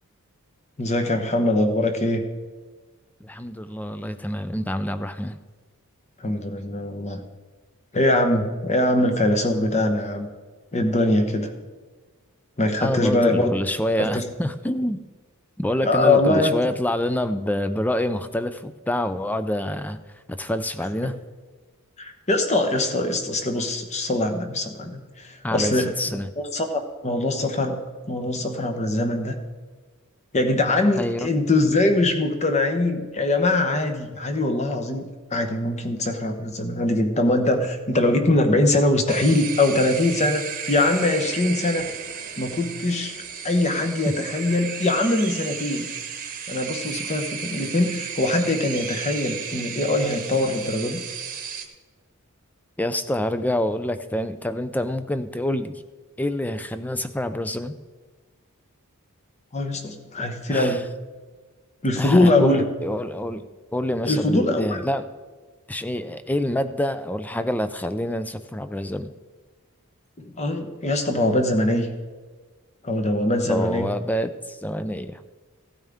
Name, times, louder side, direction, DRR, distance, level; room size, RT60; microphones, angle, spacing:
voice 1, 0.8-2.2 6.2-7.2 7.9-10.3 10.7-11.5 12.6-13.5 14.0-14.2 15.8-16.5 22.0-27.8 28.1-29.3 30.3-41.9 42.4-43.1 43.4-45.9 46.5-51.0 59.5-60.9 61.8-62.6 64.0-64.8 70.2-71.9 72.8-73.9, left 2 dB, 30° left, 6 dB, 1.0 m, -22 dB
voice 2, 3.2-5.4 12.8-15.0 15.6-20.0 20.3-21.2 25.4-26.3 31.0-31.3 52.8-55.8 56.2-57.7 60.5-60.8 62.0-63.5 63.7-65.1 65.7-69.1 73.4-75.2, left 1 dB, 5° left, 11 dB, 0.4 m, -27 dB
sound 1, 39.1-51.7, right 7 dB, 40° right, 1.0 m, -34 dB
15.5 x 9.0 x 3.6 m, 1.4 s
head